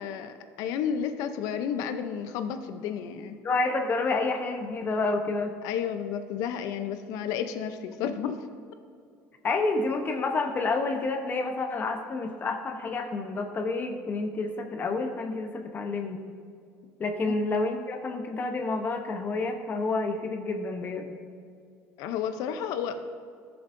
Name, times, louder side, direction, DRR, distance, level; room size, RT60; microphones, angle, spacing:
voice 1, 0.0-3.4 5.6-8.5 22.0-23.1, left 8 dB, 75° left, 9 dB, 0.7 m, -32 dB
voice 2, 3.4-5.5 9.4-16.2 17.0-21.1, left 3 dB, 35° left, 4 dB, 0.9 m, -29 dB
14.0 x 6.9 x 2.7 m, 2.3 s
supercardioid pair, 110°, 6 cm